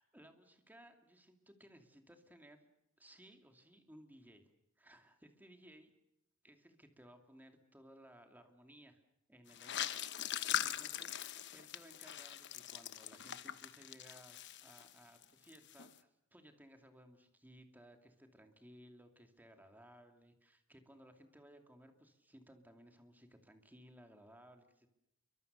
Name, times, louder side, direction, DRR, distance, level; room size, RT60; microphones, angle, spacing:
voice 1, 0.0-2.7 3.0-4.4 4.8-5.9 6.4-9.0 9.3-10.0 10.3-24.9, equal, 10° right, 5 dB, 2.6 m, -60 dB
sound 1, 9.5-15.2 15.5-15.9, left 10 dB, 55° left, 1.1 m, -41 dB
29.0 x 24.0 x 6.8 m, 0.83 s
head